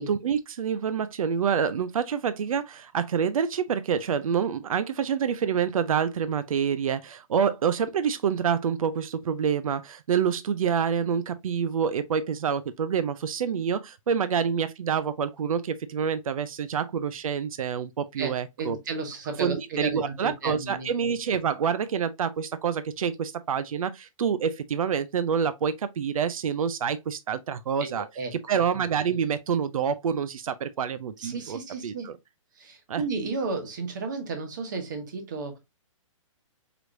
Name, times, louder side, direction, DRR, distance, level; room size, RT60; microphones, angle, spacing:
voice 1, 0.0-18.8 19.4-28.1 28.3-32.1 32.9-33.0, right 7 dB, 85° right, 0.5 m, -27 dB
voice 2, 18.2-20.9 27.8-28.6 31.2-32.1 32.6-35.6, right 3 dB, 35° right, 1.1 m, -33 dB
4.9 x 3.1 x 2.4 m
hypercardioid pair, 180°, 17 cm